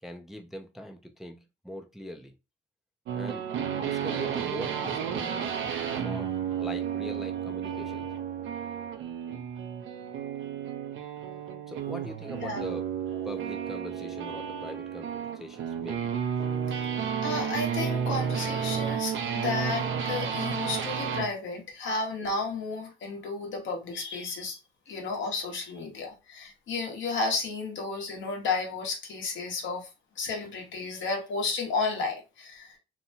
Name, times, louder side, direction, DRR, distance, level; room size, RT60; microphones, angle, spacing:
voice 1, 0.0-2.3 3.2-3.5 3.7-5.5 5.9-6.3 6.6-8.1 11.7-12.9 13.2-16.1, equal, ahead, 0.4 m, -41 dB
sound 1, 3.1-21.3, right 8 dB, 75° right, 0.6 m, -32 dB
voice 2, 12.4-12.7 16.7-16.8 17.2-24.6 24.9-29.9 30.2-32.8, left 3 dB, 70° left, 1.0 m, -32 dB
2.8 x 2.2 x 2.7 m
cardioid pair, 90°, 20 cm